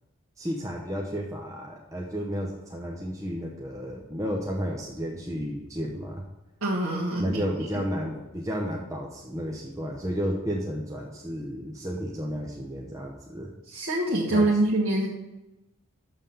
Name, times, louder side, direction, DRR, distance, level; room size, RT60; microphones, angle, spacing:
voice 1, 0.4-6.2 7.2-13.5 14.3-14.5, equal, 15° right, -1 dB, 0.8 m, -32 dB
voice 2, 6.6-7.4 7.7-7.8 13.7-15.1, right 1 dB, 65° right, -7 dB, 1.5 m, -25 dB
7.1 x 5.7 x 7.0 m, 0.98 s
head